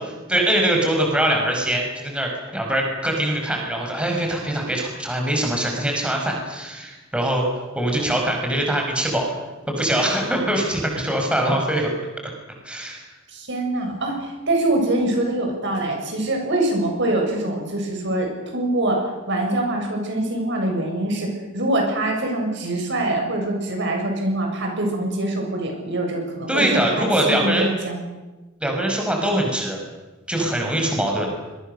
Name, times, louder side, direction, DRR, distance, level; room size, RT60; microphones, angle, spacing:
voice 1, 0.3-7.5 7.8-9.3 9.7-11.9 12.6-13.1 26.5-27.7 28.6-29.8 30.3-31.3, right 1 dB, 5° right, 1 dB, 5.3 m, -22 dB
voice 2, 13.3-26.7 27.0-28.1, right 1 dB, 60° right, 2 dB, 7.3 m, -24 dB
26.0 x 23.0 x 6.8 m, 1.2 s
head